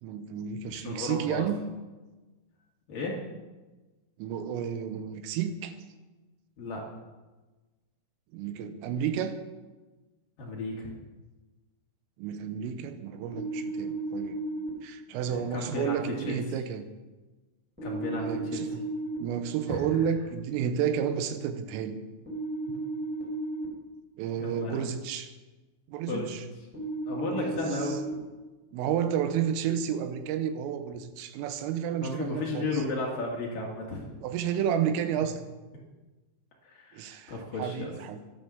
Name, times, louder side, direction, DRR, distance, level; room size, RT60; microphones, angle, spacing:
voice 1, 0.0-1.6 4.2-5.7 8.3-9.4 12.2-14.4 14.8-16.9 18.2-18.7 19.2-22.0 24.2-25.3 25.9-26.4 27.3-27.6 27.9-28.0 28.7-32.7 34.2-35.4 36.9-38.2, right 8 dB, 90° right, 9 dB, 3.5 m, -31 dB
voice 2, 0.7-1.5 2.9-3.2 6.6-6.8 10.4-10.9 15.1-16.4 17.8-18.6 19.7-20.1 24.4-24.8 26.1-26.3 27.1-28.0 32.0-34.2 36.6-37.9, left 2 dB, 50° left, -2 dB, 3.2 m, -34 dB
sound 1, 13.3-14.7 17.8-19.2 22.3-23.6 26.7-28.1, right 2 dB, ahead, 3.5 m, -34 dB
12.5 x 11.5 x 6.3 m, 1.2 s
omnidirectional pair, 5.8 m